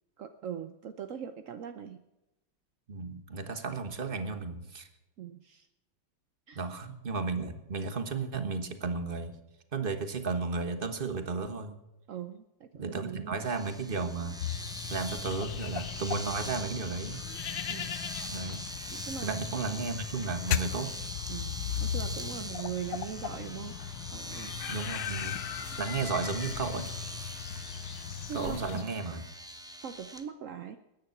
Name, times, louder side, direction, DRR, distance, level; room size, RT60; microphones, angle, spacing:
voice 1, 0.2-2.0 5.2-5.7 6.5-6.7 12.1-13.5 17.7-17.9 18.9-19.3 19.7-19.8 21.3-23.8 24.1-24.9 25.7-25.8 27.8-28.8 29.8-30.8, right 8 dB, 60° right, 9 dB, 0.8 m, -41 dB
voice 2, 2.9-4.9 6.5-9.3 9.7-11.7 12.7-14.4 14.9-17.2 18.3-18.6 19.2-20.9 24.7-25.4 25.8-26.9 28.3-29.2, right 4 dB, 30° right, 8 dB, 1.3 m, -34 dB
Domestic sounds home sounds, 13.4-30.2, equal, 5° right, 0.6 m, -43 dB
sound 1, 14.4-28.8, left 9 dB, 70° left, 1.4 m, -37 dB
20.5 x 10.0 x 5.9 m, 0.96 s
omnidirectional pair, 2.2 m